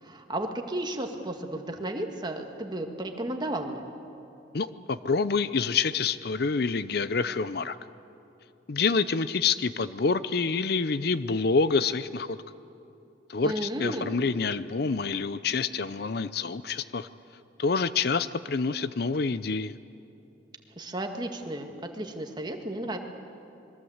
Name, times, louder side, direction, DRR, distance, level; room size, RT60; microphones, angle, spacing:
voice 1, 0.0-3.8 13.4-14.1 20.8-23.0, right 1 dB, 25° right, 4 dB, 1.8 m, -33 dB
voice 2, 4.5-7.8 8.7-12.4 13.3-17.1 17.6-19.7, left 4 dB, 55° left, 14 dB, 0.6 m, -27 dB
26.0 x 22.0 x 8.0 m, 2.8 s
head